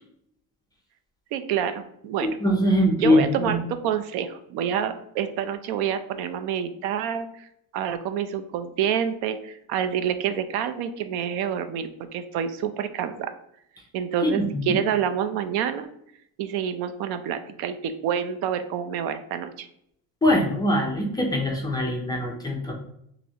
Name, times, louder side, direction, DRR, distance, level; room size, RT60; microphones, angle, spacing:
voice 1, 1.3-2.4 3.0-7.5 7.7-13.3 13.9-15.9 16.4-19.7, right 8 dB, 90° right, 10 dB, 0.5 m, -28 dB
voice 2, 2.2-3.6 14.2-14.8 20.2-22.7, left 1 dB, 10° left, 0 dB, 0.3 m, -22 dB
5.4 x 2.1 x 2.7 m, 0.72 s
cardioid pair, 160°, 37 cm